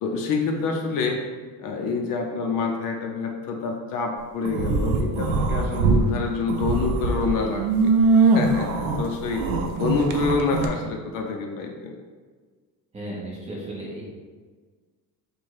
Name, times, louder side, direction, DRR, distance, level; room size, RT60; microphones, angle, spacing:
voice 1, 0.0-1.2 1.6-7.9 8.3-9.4 9.8-12.0, left 4 dB, 60° left, 2 dB, 0.6 m, -27 dB
sound 1, 4.4-6.0 6.4-10.7, right 4 dB, 60° right, 0.5 m, -22 dB
voice 2, 12.9-14.0, right 1 dB, 15° right, -5 dB, 0.8 m, -34 dB
4.3 x 2.3 x 4.7 m, 1.5 s
cardioid pair, 180°, 39 cm